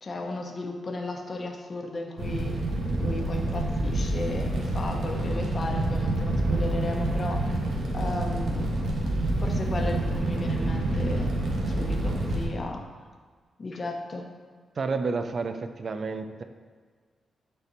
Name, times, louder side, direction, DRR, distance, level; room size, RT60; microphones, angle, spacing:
voice 1, 0.0-2.6 3.0-7.5 7.9-8.8 9.4-11.3 11.7-12.9 13.6-14.3, left 2 dB, 40° left, 2 dB, 0.9 m, -35 dB
Fire, 2.2-12.5, right 1 dB, 80° right, 1.2 m, -27 dB
voice 2, 14.8-16.4, right 4 dB, 50° right, 8 dB, 0.5 m, -30 dB
11.0 x 4.3 x 2.7 m, 1.5 s
cardioid pair, 95°, 0 cm